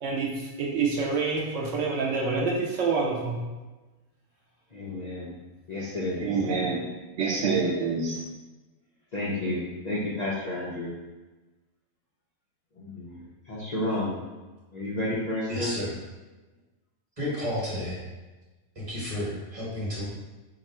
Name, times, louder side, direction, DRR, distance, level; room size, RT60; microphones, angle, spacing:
voice 1, 0.0-3.4 6.2-6.8 7.2-8.2, right 4 dB, 65° right, -2 dB, 0.9 m, -27 dB
voice 2, 4.7-5.3 5.7-6.4 9.1-11.0 12.8-14.2 14.7-15.8, left 1 dB, 90° left, -7 dB, 0.3 m, -31 dB
voice 3, 15.5-15.9 17.2-18.0 18.7-20.0, left 1 dB, 25° right, -7 dB, 1.0 m, -31 dB
2.9 x 2.4 x 4.1 m, 1.2 s
omnidirectional pair, 1.5 m